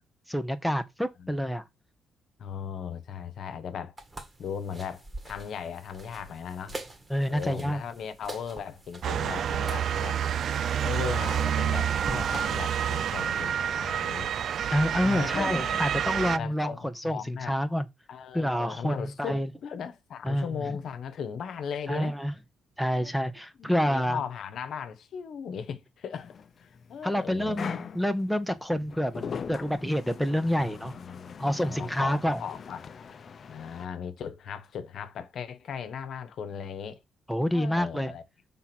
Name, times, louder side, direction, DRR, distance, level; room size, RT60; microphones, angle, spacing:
voice 1, 0.3-1.6 7.1-7.8 14.7-17.9 18.3-19.5 20.2-20.8 21.9-22.3 22.8-24.2 27.0-30.9 31.4-32.4 37.3-38.1, equal, ahead, 0.9 m, -28 dB
voice 2, 2.4-3.9 4.4-6.8 7.3-10.2 10.8-14.3 15.0-15.8 16.4-17.6 18.1-22.2 22.9-23.1 23.6-27.6 30.4-32.9 33.5-37.0 37.5-38.2, left 7 dB, 65° left, 1.0 m, -37 dB
sound 1, 4.0-12.4, right 2 dB, 25° right, 1.8 m, -45 dB
Motor vehicle (road) / Siren, 9.0-16.4, right 9 dB, 65° right, 0.3 m, -28 dB
sound 2, 26.1-33.9, left 6 dB, 50° left, 0.6 m, -41 dB
5.8 x 3.7 x 6.0 m
cardioid pair, 90°, 0 cm